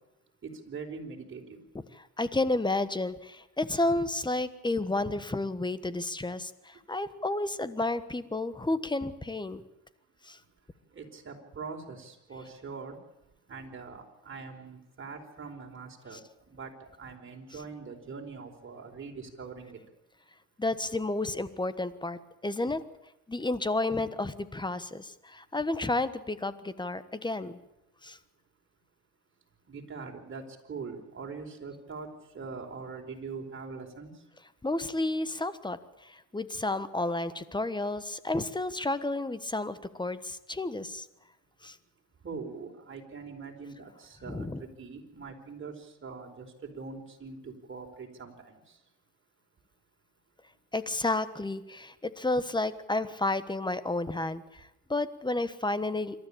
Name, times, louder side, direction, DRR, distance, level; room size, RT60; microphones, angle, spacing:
voice 1, 0.4-1.6 10.9-13.0 13.5-16.2 16.5-19.8 29.7-30.4 30.7-34.2 42.2-48.8, right 5 dB, 40° right, 2 dB, 4.7 m, -43 dB
voice 2, 1.9-9.6 10.2-10.4 16.1-16.2 20.6-22.8 23.3-27.6 28.0-28.2 34.6-41.1 41.6-41.8 44.3-44.6 50.7-56.3, left 2 dB, 15° left, 14 dB, 1.3 m, -31 dB
26.5 x 13.0 x 8.7 m, 0.90 s
cardioid pair, 90°, 30 cm